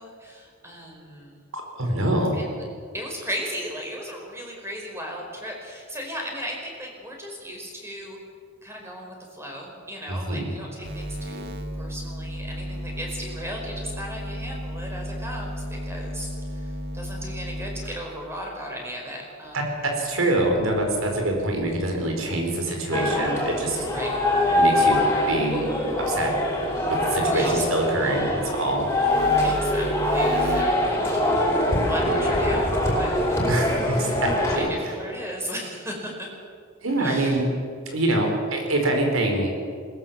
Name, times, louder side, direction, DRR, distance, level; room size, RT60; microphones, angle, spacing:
voice 1, 0.0-1.4 2.3-2.5 2.9-8.2 8.6-19.7 23.8-24.2 27.2-27.6 29.4-31.6 31.9-33.5 33.7-33.9 34.5-36.3 37.0-37.4, equal, 10° right, 0 dB, 4.9 m, -36 dB
voice 2, 1.5-2.4 10.1-10.4 19.5-23.8 24.6-25.7 26.1-26.3 26.8-28.9 33.5-34.7 36.8-37.5 37.9-39.5, right 1 dB, 75° right, 2 dB, 5.0 m, -25 dB
sound 1, 10.8-18.3 20.3-22.4 22.9-27.7 28.1-30.6, equal, 50° right, 2.3 m, -36 dB
sound 2, 22.9-34.6, left 1 dB, 15° left, 5.1 m, -23 dB
21.5 x 19.0 x 7.5 m, 2.2 s
head